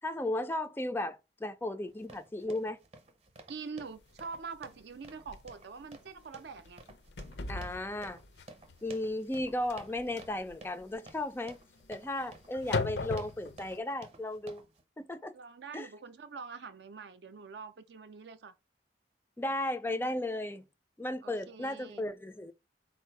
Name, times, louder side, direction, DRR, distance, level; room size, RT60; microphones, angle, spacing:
voice 1, 0.0-2.8 7.5-8.2 8.8-11.6 11.9-14.6 15.0-15.3 15.7-15.9 19.4-20.6 21.0-22.5, left 1 dB, 10° left, 0.3 m, -35 dB
sound 1, 1.9-14.8, right 2 dB, 35° right, 0.7 m, -54 dB
voice 2, 3.5-6.8 15.3-18.6 21.2-22.1, right 5 dB, 65° right, 0.5 m, -45 dB
sound 2, 4.2-4.3 4.7-4.8 5.3-5.5 5.9-6.2 6.5-13.8, left 4 dB, 70° left, 0.5 m, -39 dB
4.1 x 2.6 x 4.5 m
head